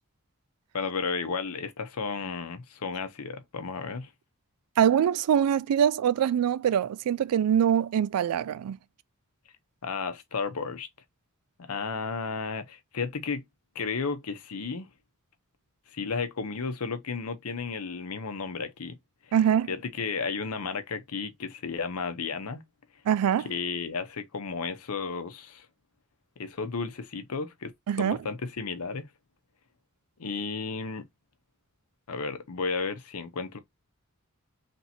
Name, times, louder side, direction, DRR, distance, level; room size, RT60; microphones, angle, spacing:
voice 1, 0.7-4.1 9.8-10.9 11.6-13.4 13.7-14.9 15.9-19.0 19.2-19.4 19.7-22.6 23.4-25.7 26.4-27.7 28.0-29.1 30.2-31.0 32.1-33.6, left 4 dB, 80° left, 0.7 m, -33 dB
voice 2, 4.8-8.8 19.3-19.7 23.1-23.5 27.9-28.2, right 9 dB, 80° right, 0.3 m, -23 dB
3.4 x 2.7 x 4.2 m
head